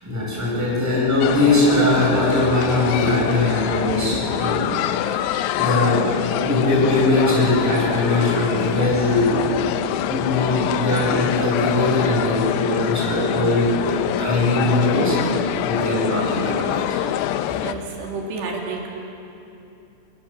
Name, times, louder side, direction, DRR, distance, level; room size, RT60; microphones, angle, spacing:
voice 1, 0.0-4.7 5.0-5.3 5.6-6.0 6.4-9.5 10.0-17.0, left 2 dB, 5° right, -6 dB, 7.2 m, -21 dB
sound 1, 1.2-17.7, left 12 dB, 80° left, 2.7 m, -25 dB
voice 2, 17.6-18.9, right 3 dB, 70° right, -1 dB, 5.0 m, -30 dB
26.5 x 21.5 x 7.5 m, 2.8 s
omnidirectional pair, 5.3 m